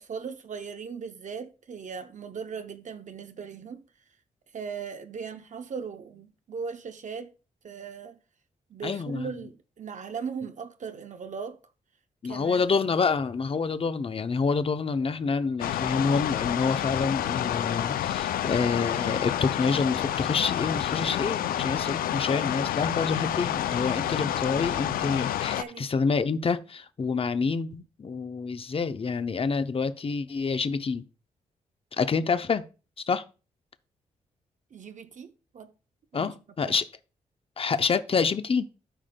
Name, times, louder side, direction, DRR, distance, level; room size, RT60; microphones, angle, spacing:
voice 1, 0.0-3.8 4.5-7.3 7.6-8.2 8.7-11.6 12.2-12.6 25.5-25.9 34.7-35.7 36.1-36.3 36.6-36.8, right 6 dB, 55° right, 0.7 m, -38 dB
voice 2, 8.8-9.3 12.2-31.0 31.9-32.6 33.1-33.2 36.1-36.8 37.6-38.7, left 5 dB, 40° left, 0.7 m, -27 dB
sound 1, 15.6-25.6, left 11 dB, 75° left, 0.4 m, -29 dB
12.5 x 4.9 x 2.2 m
supercardioid pair, 45°, 15 cm